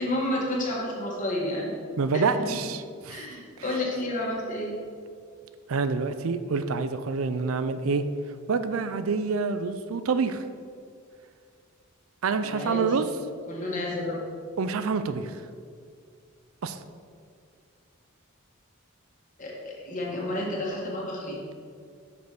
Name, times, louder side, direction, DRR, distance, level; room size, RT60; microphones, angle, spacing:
voice 1, 0.0-1.7 2.1-2.2 3.1-4.7 12.4-13.0 13.5-14.2 19.4-21.4, left 1 dB, 40° left, -3 dB, 1.9 m, -30 dB
voice 2, 2.0-3.3 5.7-8.0 8.5-10.4 12.2-13.1 14.6-15.4 16.6-16.8, right 4 dB, 75° right, 11 dB, 0.5 m, -27 dB
6.7 x 5.3 x 6.0 m, 2.2 s
head